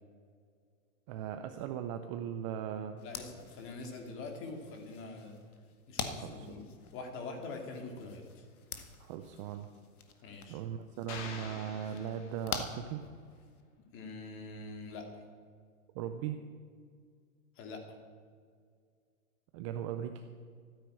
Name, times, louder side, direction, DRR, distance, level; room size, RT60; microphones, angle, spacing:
voice 1, 1.1-3.0 6.1-6.5 9.0-9.7 10.5-13.0 15.9-16.4 19.5-20.2, right 9 dB, 25° right, 7 dB, 0.5 m, -38 dB
sound 1, 3.0-13.6, left 5 dB, 80° left, 2.0 m, -46 dB
voice 2, 3.0-5.4 5.9-6.6 6.9-8.5 10.2-10.6 13.9-15.2 17.6-17.9, left 3 dB, 30° left, 4 dB, 2.6 m, -44 dB
sound 2, 11.1-12.8, left 5 dB, 50° left, 2.7 m, -46 dB
13.5 x 9.9 x 8.9 m, 2.1 s
hypercardioid pair, 140°, 43 cm